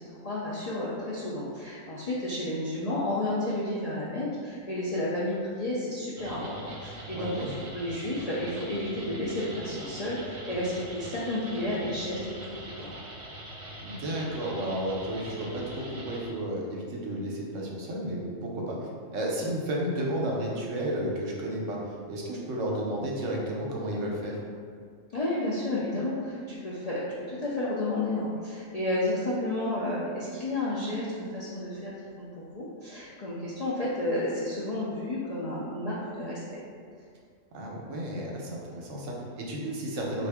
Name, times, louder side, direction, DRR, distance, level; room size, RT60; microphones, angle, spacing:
voice 1, 0.2-12.9 25.1-36.4, left 1 dB, 60° left, -8 dB, 0.4 m, -31 dB
sound 1, 6.2-16.3, right 1 dB, 45° right, 0.7 m, -43 dB
voice 2, 7.1-7.5 13.8-21.8 22.1-24.4 37.5-40.3, right 1 dB, 75° right, -2 dB, 1.0 m, -32 dB
3.6 x 2.5 x 3.4 m, 2.1 s
omnidirectional pair, 1.4 m